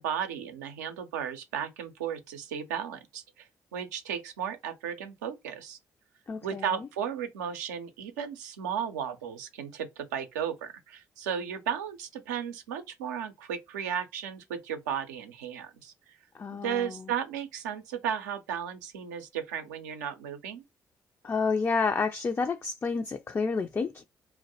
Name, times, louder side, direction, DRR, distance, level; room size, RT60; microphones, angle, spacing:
voice 1, 0.0-5.8 6.4-16.2 16.5-20.6, right 8 dB, 85° right, 0.5 m, -35 dB
voice 2, 6.3-6.7 16.3-17.0 21.2-24.0, left 4 dB, 30° left, 0.3 m, -29 dB
2.3 x 2.0 x 2.7 m
hypercardioid pair, 45°, 9 cm